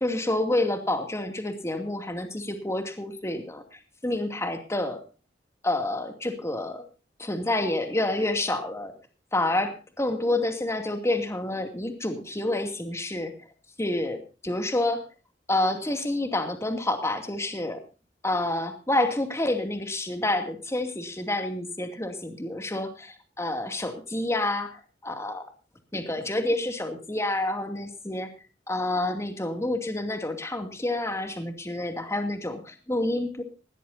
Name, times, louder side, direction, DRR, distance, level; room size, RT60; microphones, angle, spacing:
voice 1, 0.0-5.0 5.6-6.8 7.2-8.9 9.3-13.3 13.8-15.0 15.5-17.8 18.2-25.5 25.9-28.3 28.7-33.4, left 1 dB, 15° left, 6 dB, 2.4 m, -28 dB
19.5 x 17.5 x 2.7 m, 0.33 s
head